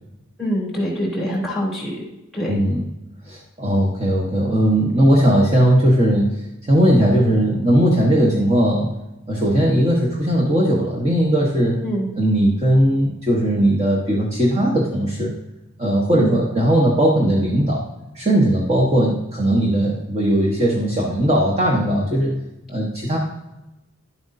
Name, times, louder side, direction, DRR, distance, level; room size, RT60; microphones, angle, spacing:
voice 1, 0.4-2.0 2.3-2.6 11.8-12.1 16.1-16.4, equal, ahead, -5 dB, 3.1 m, -24 dB
voice 2, 2.5-2.8 3.3-6.4 6.7-8.9 9.3-11.8 12.2-15.3 15.8-17.8 18.1-22.4 22.7-23.2, right 1 dB, 30° right, -4 dB, 1.1 m, -18 dB
11.5 x 7.9 x 2.6 m, 0.95 s
head